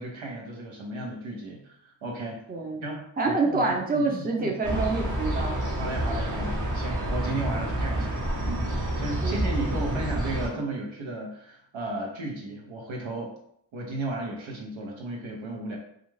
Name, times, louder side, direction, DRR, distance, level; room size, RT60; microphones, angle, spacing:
voice 1, 0.0-2.4 2.8-4.8 5.8-8.2 8.5-13.3 13.7-15.8, right 2 dB, 70° right, 0 dB, 0.9 m, -34 dB
voice 2, 2.5-2.8 3.2-5.6 9.2-9.4, right 3 dB, 20° right, 1 dB, 0.6 m, -27 dB
sound 1, 4.6-10.5, right 1 dB, 40° right, 0.9 m, -28 dB
2.4 x 2.3 x 3.1 m, 0.67 s
supercardioid pair, 45°, 48 cm